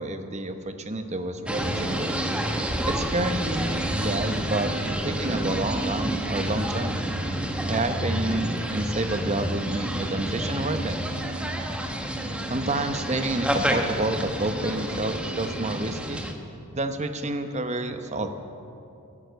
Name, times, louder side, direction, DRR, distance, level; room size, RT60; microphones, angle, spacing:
voice 1, 0.0-2.2 2.9-7.0 7.7-11.0 12.5-16.2 16.7-18.3, right 2 dB, 30° right, 7 dB, 0.9 m, -29 dB
sound 1, 1.5-16.3, right 1 dB, 5° right, 1.0 m, -29 dB
15.0 x 11.0 x 8.1 m, 2.7 s
head